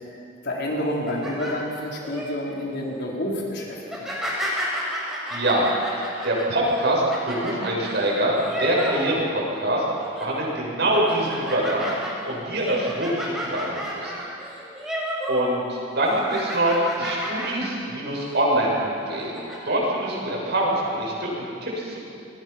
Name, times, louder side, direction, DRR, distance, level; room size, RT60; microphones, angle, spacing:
voice 1, 0.1-4.1, left 1 dB, 60° left, -3 dB, 4.7 m, -29 dB
sound 1, 0.8-2.3 2.7-3.0 3.8-9.6 9.9-10.4 10.8-15.5 15.8-17.7 18.1-18.3 19.0-19.6, equal, 5° right, 6.3 m, -32 dB
voice 2, 5.3-9.8 10.2-11.9 12.2-14.1 15.3-19.4 19.6-22.0, right 1 dB, 60° right, -3 dB, 7.8 m, -24 dB
27.5 x 22.0 x 6.1 m, 2.6 s
head